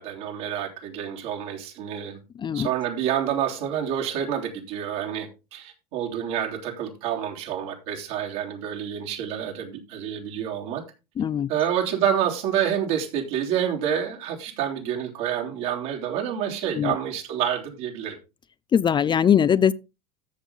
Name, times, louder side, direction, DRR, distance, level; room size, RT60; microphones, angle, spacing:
voice 1, 0.0-2.2 2.5-10.8 11.5-18.2, right 9 dB, 65° right, 3.2 m, -28 dB
voice 2, 11.2-11.5 16.7-17.0 18.7-19.7, left 8 dB, 25° left, 0.4 m, -20 dB
13.5 x 6.6 x 3.6 m
hypercardioid pair, 80°, 19 cm